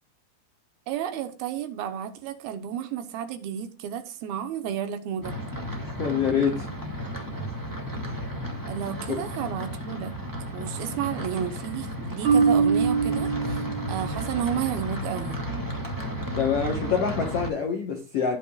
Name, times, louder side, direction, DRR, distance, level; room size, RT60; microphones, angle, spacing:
voice 1, 0.9-5.4 8.7-10.2 10.5-15.4, right 9 dB, 75° right, 2.7 m, -32 dB
sound 1, 5.2-17.5, equal, 15° right, 0.7 m, -33 dB
voice 2, 6.0-6.7 16.3-18.4, left 6 dB, 65° left, 1.5 m, -25 dB
Marimba xylophone, 12.2-14.3, right 5 dB, 45° right, 2.5 m, -23 dB
17.5 x 6.0 x 2.3 m
omnidirectional pair, 4.6 m